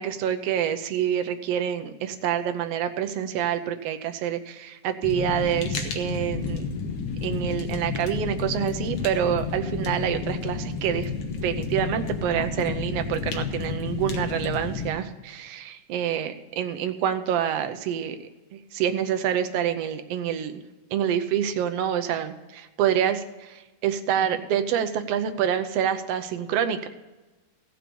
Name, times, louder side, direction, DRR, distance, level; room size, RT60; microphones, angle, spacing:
voice 1, 0.0-6.7 7.2-11.1 11.4-18.2 18.5-20.5 20.9-26.9, right 9 dB, 75° right, 8 dB, 1.4 m, -27 dB
Fire, 5.0-14.9, left 5 dB, 60° left, 1.9 m, -31 dB
15.5 x 6.0 x 6.8 m, 1.1 s
omnidirectional pair, 3.6 m